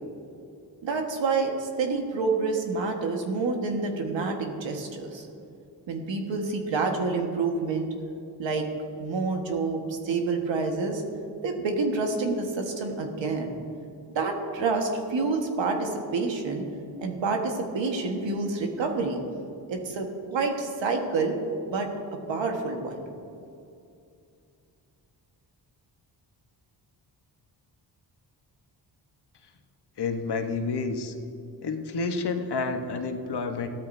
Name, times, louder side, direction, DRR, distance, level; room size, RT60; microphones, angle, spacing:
voice 1, 0.8-5.3 5.9-7.9 8.4-8.7 9.0-11.0 11.4-13.6 14.1-16.7 17.0-19.2 19.7-21.4 21.7-23.0, right 4 dB, 80° right, 3 dB, 1.6 m, -28 dB
voice 2, 30.0-31.1 31.6-33.7, left 4 dB, 60° left, 6 dB, 1.2 m, -29 dB
16.0 x 13.0 x 2.7 m, 2.6 s
cardioid pair, 70°, 44 cm